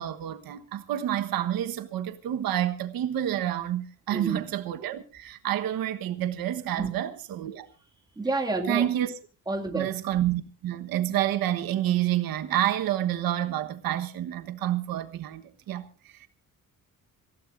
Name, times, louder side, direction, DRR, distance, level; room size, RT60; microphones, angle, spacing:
voice 1, 0.0-7.7 8.7-9.1 9.7-15.9 16.1-16.3, right 12 dB, 80° right, 1.4 m, -28 dB
voice 2, 4.1-4.5 6.8-7.0 8.2-8.9 9.5-9.9, right 2 dB, 10° right, 2.3 m, -29 dB
27.0 x 16.0 x 2.6 m
cardioid pair, 170°, 35 cm